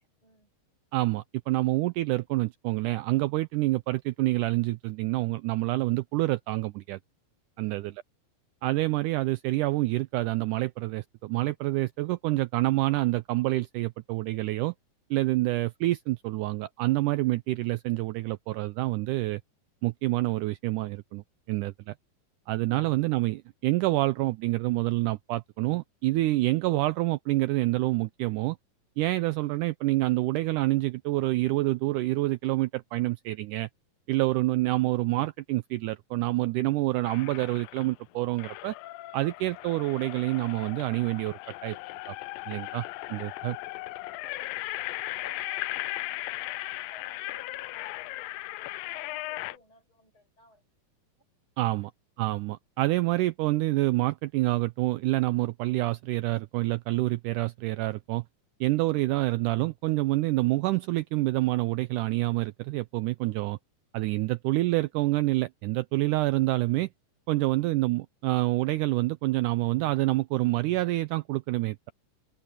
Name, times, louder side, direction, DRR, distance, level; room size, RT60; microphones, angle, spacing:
voice 1, 0.2-0.5 7.6-8.0 22.8-22.9 44.2-50.6 67.4-67.6, left 2 dB, 35° left, 7.9 m, -56 dB
voice 2, 0.9-7.0 7.6-7.9 8.6-14.7 15.1-19.4 19.8-22.0 22.5-28.6 29.0-33.7 34.1-38.8 39.1-41.8 42.1-42.2 42.5-43.6 51.6-51.9 52.2-58.2 58.6-63.6 63.9-66.9 67.3-71.9, right 19 dB, 80° right, 1.9 m, -27 dB
sound 1, 37.0-38.0 38.4-49.6, left 18 dB, 90° left, 2.3 m, -37 dB
omnidirectional pair, 4.0 m